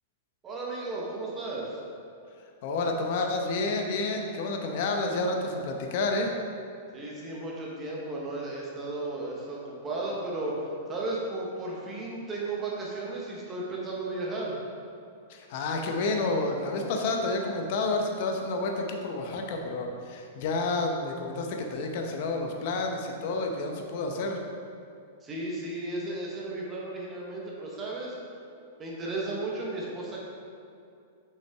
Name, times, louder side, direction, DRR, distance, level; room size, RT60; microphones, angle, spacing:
voice 1, 0.4-1.8 6.9-14.5 25.2-28.2 28.8-30.2, right 2 dB, 15° right, -4 dB, 0.9 m, -34 dB
voice 2, 2.6-6.3 15.3-24.4, left 2 dB, 45° left, 2 dB, 0.7 m, -30 dB
6.1 x 5.7 x 3.5 m, 2.5 s
supercardioid pair, 170°, 0 cm